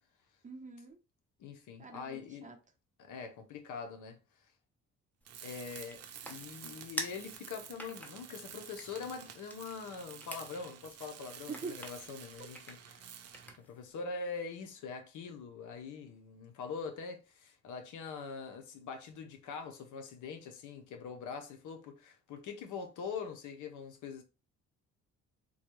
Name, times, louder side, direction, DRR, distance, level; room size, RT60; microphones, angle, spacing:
voice 1, 0.4-1.0 1.8-2.6 11.5-11.8, right 4 dB, 25° right, 0.8 m, -44 dB
voice 2, 1.4-2.5 3.0-4.2 5.4-13.3 13.6-24.2, left 5 dB, 80° left, 0.8 m, -43 dB
sound 1, 5.2-13.9, equal, 5° left, 0.8 m, -48 dB
Tools, 5.2-13.6, right 8 dB, 55° right, 0.6 m, -50 dB
3.8 x 2.2 x 3.1 m
cardioid pair, 90°, 30 cm